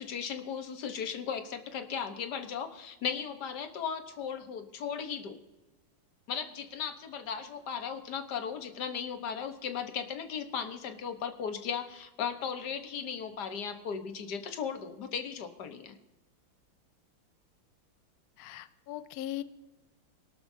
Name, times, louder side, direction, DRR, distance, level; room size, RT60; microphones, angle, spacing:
voice 1, 0.0-5.4 6.3-15.9, left 7 dB, 55° left, 8 dB, 1.6 m, -36 dB
voice 2, 18.4-19.4, left 13 dB, 85° left, 14 dB, 0.8 m, -39 dB
22.0 x 12.0 x 2.7 m, 1.1 s
omnidirectional pair, 2.3 m